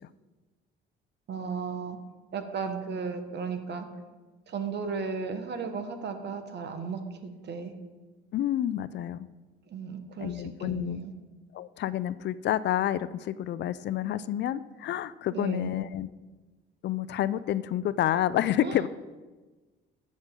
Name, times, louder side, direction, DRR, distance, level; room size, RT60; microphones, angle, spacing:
voice 1, 1.3-2.0 2.3-3.9 4.5-7.7 9.7-11.1 15.3-15.7 18.6-18.8, right 5 dB, 55° right, 7 dB, 1.2 m, -35 dB
voice 2, 8.3-9.3 10.2-11.0 11.5-16.1 16.8-18.9, left 12 dB, 55° left, 16 dB, 0.4 m, -29 dB
13.5 x 6.5 x 3.7 m, 1.3 s
cardioid pair, 90°, 21 cm